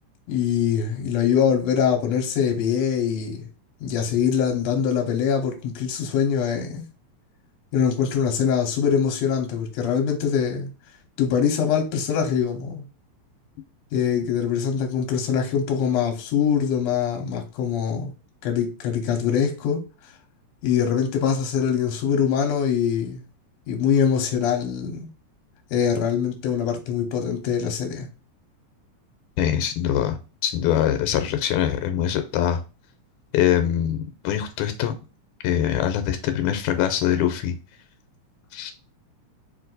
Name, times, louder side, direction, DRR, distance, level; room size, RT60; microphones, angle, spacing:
voice 1, 0.3-3.5 3.8-6.9 7.7-10.7 11.2-12.8 13.9-18.1 18.4-19.8 20.6-23.2 23.7-25.1 25.7-28.1, left 7 dB, 70° left, 2.0 m, -23 dB
voice 2, 29.4-30.2 30.4-32.6 33.3-35.0 35.4-37.6 38.5-38.7, left 10 dB, 90° left, 2.1 m, -23 dB
4.8 x 2.6 x 3.9 m
omnidirectional pair, 3.4 m